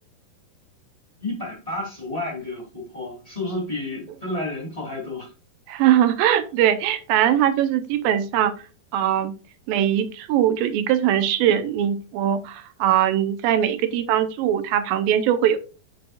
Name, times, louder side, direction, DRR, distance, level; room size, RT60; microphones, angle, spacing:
voice 1, 1.2-5.3, left 2 dB, 10° left, -3 dB, 2.6 m, -31 dB
voice 2, 5.7-8.5 8.9-9.3 9.7-15.6, right 10 dB, 85° right, 11 dB, 2.4 m, -21 dB
8.5 x 6.3 x 2.3 m, 0.33 s
omnidirectional pair, 4.2 m